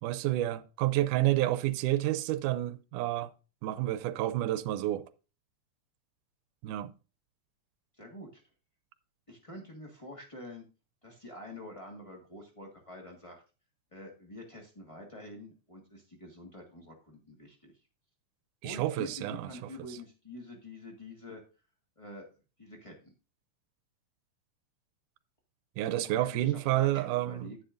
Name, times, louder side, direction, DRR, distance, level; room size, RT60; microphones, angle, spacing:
voice 1, 0.0-3.3 3.6-5.0 6.6-6.9 18.6-19.5 25.8-27.5, right 15 dB, 90° right, 2.1 m, -29 dB
voice 2, 7.9-8.4 9.3-10.7 11.0-13.4 13.9-17.7 18.6-21.4 22.0-22.3 22.6-23.1 26.1-27.6, left 1 dB, 30° left, 0.5 m, -47 dB
10.5 x 9.9 x 2.5 m
omnidirectional pair, 3.6 m